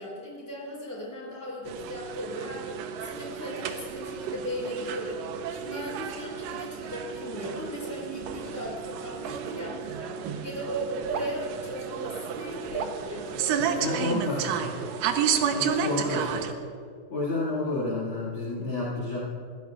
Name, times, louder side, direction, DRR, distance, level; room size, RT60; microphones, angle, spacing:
voice 1, 0.0-5.2 5.5-14.6, equal, 5° left, -3 dB, 3.6 m, -37 dB
sound 1, 1.7-16.5, right 7 dB, 90° right, 1.9 m, -32 dB
voice 2, 13.8-14.7 15.5-16.5 17.1-19.2, left 2 dB, 40° left, -7 dB, 2.1 m, -30 dB
23.0 x 16.5 x 2.4 m, 2.2 s
omnidirectional pair, 4.9 m